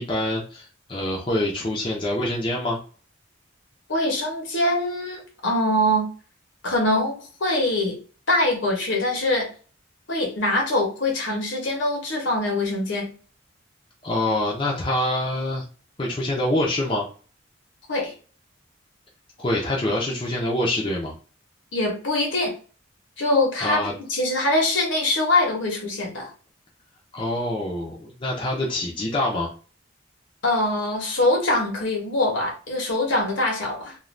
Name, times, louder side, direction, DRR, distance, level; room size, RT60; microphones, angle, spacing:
voice 1, 0.0-2.8 14.0-15.6 16.0-17.1 19.4-21.1 23.6-23.9 27.1-29.5, left 1 dB, 25° left, 0.5 m, -25 dB
voice 2, 3.9-6.1 6.6-8.0 8.3-9.5 10.1-13.1 17.9-18.1 21.7-22.5 23.2-23.8 24.1-26.3 30.4-34.0, left 1 dB, 70° left, 1.0 m, -23 dB
2.5 x 2.2 x 3.1 m
head